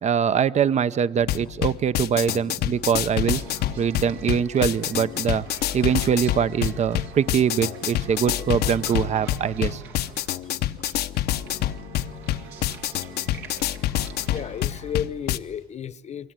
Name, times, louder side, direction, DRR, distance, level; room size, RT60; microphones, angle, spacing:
voice 1, 0.0-3.4 3.8-5.5 5.7-9.8, right 7 dB, 40° right, 0.8 m, -23 dB
sound 1, 1.2-15.4, left 12 dB, 70° left, 0.8 m, -27 dB
sound 2, 3.3-15.0, right 6 dB, 80° right, 3.3 m, -44 dB
voice 2, 14.3-16.3, left 8 dB, 40° left, 0.9 m, -33 dB
27.5 x 23.0 x 9.0 m
cardioid pair, 110°, 17 cm